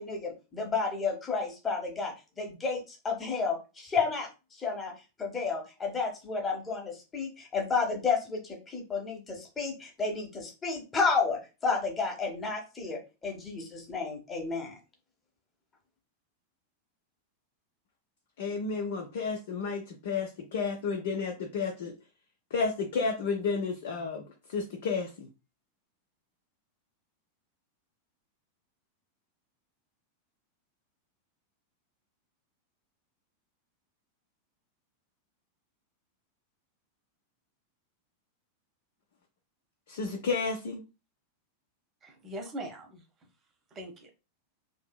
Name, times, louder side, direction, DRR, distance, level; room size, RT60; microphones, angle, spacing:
voice 1, 0.0-4.9 5.2-14.8, left 4 dB, 20° left, 1 dB, 0.9 m, -31 dB
voice 2, 18.4-21.9 22.5-24.2 24.5-25.3 39.9-40.8, left 5 dB, 55° left, 1 dB, 0.5 m, -31 dB
voice 3, 42.0-43.0 43.7-44.1, right 1 dB, 25° right, 4 dB, 0.7 m, -41 dB
2.7 x 2.6 x 2.2 m, 0.29 s
figure-of-eight pair, 90°, 0 cm